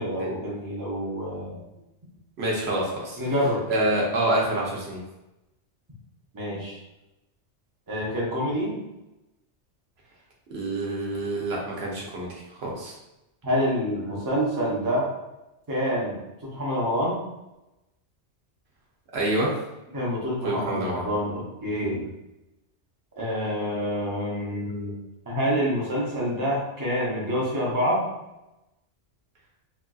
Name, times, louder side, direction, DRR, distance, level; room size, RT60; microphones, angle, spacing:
voice 1, 0.0-1.6 3.2-3.7 6.3-6.8 7.9-8.8 13.4-15.1 15.7-16.1 16.5-17.2 19.9-22.0 23.2-24.9 25.3-28.0, equal, 20° right, -5 dB, 0.6 m, -27 dB
voice 2, 2.4-3.2 3.7-5.0 10.5-12.9 19.1-19.6 20.4-21.0, right 1 dB, 65° right, -3 dB, 0.9 m, -27 dB
3.0 x 2.5 x 2.3 m, 0.96 s
omnidirectional pair, 1.2 m